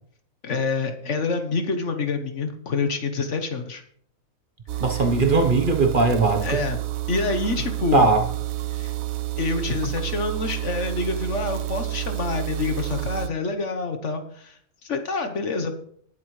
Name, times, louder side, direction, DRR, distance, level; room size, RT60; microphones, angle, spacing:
voice 1, 0.4-3.8 4.9-5.0 6.4-6.8 7.1-8.1 8.7-8.9 9.4-15.8, left 4 dB, 55° left, 7 dB, 1.4 m, -27 dB
sound 1, 4.7-13.3, right 15 dB, 70° right, 1.0 m, -29 dB
voice 2, 4.8-6.6 7.9-8.2, right 3 dB, 40° right, 3 dB, 1.1 m, -19 dB
19.0 x 7.7 x 3.2 m, 0.63 s
omnidirectional pair, 1.5 m